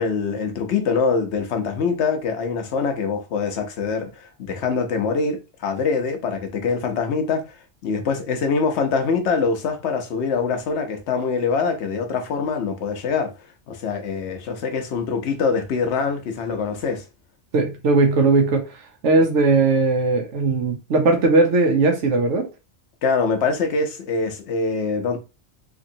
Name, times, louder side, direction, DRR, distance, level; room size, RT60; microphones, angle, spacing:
voice 1, 0.0-7.6 7.8-13.3 13.7-17.0 23.0-25.2, left 5 dB, 70° left, 1.0 m, -24 dB
voice 2, 17.5-18.7 19.0-22.5, right 3 dB, 90° right, 1.2 m, -18 dB
3.5 x 3.0 x 2.7 m
omnidirectional pair, 1.2 m